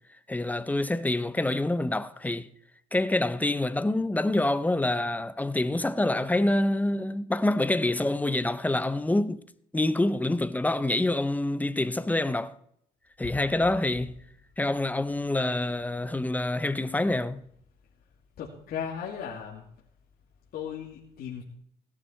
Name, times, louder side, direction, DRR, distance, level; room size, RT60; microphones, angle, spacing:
voice 1, 0.3-2.5 2.9-9.4 9.7-12.5 13.2-14.2 14.6-17.4, left 2 dB, 10° left, 0.7 m, -26 dB
voice 2, 18.4-19.6 20.5-21.4, left 8 dB, 65° left, 2.5 m, -36 dB
17.0 x 11.5 x 4.5 m
cardioid pair, 110°, 17 cm